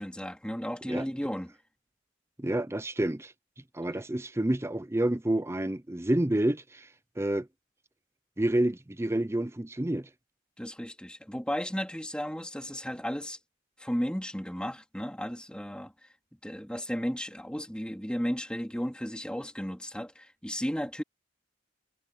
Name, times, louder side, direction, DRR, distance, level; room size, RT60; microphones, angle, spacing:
voice 1, 0.0-1.5 10.6-13.4 13.8-15.9 16.4-21.0, equal, 5° left, 3.4 m, -34 dB
voice 2, 2.4-3.3 3.7-6.9 7.2-7.5 8.4-10.1, right 1 dB, 15° right, 0.6 m, -28 dB
head